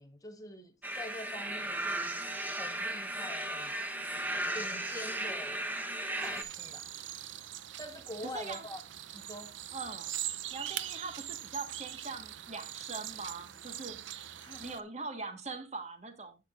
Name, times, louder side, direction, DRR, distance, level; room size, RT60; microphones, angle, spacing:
voice 1, 0.0-2.1 2.5-3.8 4.5-5.6 6.2-6.9 7.8-8.8 9.1-9.5 14.4-14.8, left 1 dB, 20° left, 1.2 m, -45 dB
sound 1, 0.8-6.4, right 1 dB, 10° right, 0.9 m, -36 dB
sound 2, 6.2-14.8, right 12 dB, 80° right, 0.6 m, -42 dB
voice 2, 8.2-8.6 9.7-10.1 10.5-14.0 14.6-16.4, right 3 dB, 35° right, 1.5 m, -42 dB
11.5 x 8.5 x 2.5 m
head